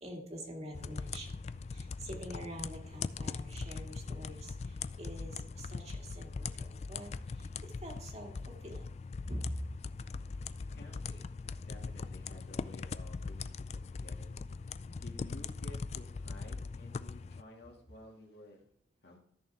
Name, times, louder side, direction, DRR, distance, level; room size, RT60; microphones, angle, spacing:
voice 1, 0.0-7.1 7.4-8.9 9.3-9.4, equal, 35° right, 0 dB, 2.2 m, -46 dB
sound 1, 0.7-17.4, left 4 dB, 35° left, 0.3 m, -41 dB
voice 2, 10.7-11.3 11.6-14.3 15.0-18.7 19.0-19.2, left 1 dB, 65° left, 0 dB, 2.2 m, -53 dB
13.5 x 6.5 x 3.4 m, 0.70 s
head